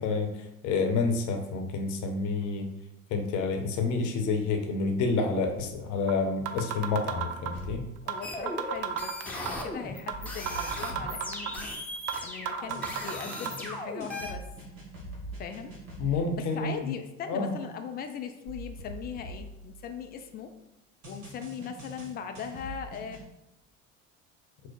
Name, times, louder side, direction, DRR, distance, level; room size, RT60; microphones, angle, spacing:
voice 1, 0.0-2.7 3.1-7.9 16.0-16.9 17.3-17.5, left 4 dB, 50° left, 3 dB, 0.8 m, -29 dB
sound 1, 5.6-5.7 6.1-6.2 6.5-7.6 8.1-8.2 8.5-9.6 10.1-10.2 10.5-11.6 12.1-12.2 12.5-13.5, right 11 dB, 40° right, 0.5 m, -32 dB
sound 2, 7.5-8.1 10.1-12.0 12.7-16.4 18.5-20.3 21.0-23.3, right 1 dB, 70° right, 1.5 m, -44 dB
voice 2, 8.0-11.7 12.2-14.5 15.4-15.7 16.1-20.5 21.1-23.2, left 7 dB, 25° left, 6 dB, 0.3 m, -39 dB
sound 3, 8.2-14.3, left 1 dB, 5° left, 0.7 m, -38 dB
4.5 x 2.0 x 4.5 m, 0.87 s
figure-of-eight pair, 60°, 40 cm